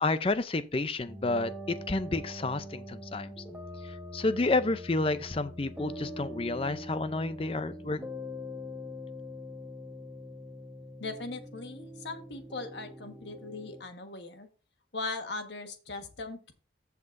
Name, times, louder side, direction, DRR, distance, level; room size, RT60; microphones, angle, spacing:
voice 1, 0.0-3.3 3.8-8.0, left 2 dB, 30° left, 0.5 m, -30 dB
sound 1, 1.1-13.8, left 1 dB, 10° right, 1.0 m, -43 dB
voice 2, 11.0-14.5 14.9-16.5, left 3 dB, 70° left, 1.4 m, -39 dB
15.0 x 5.9 x 2.6 m
head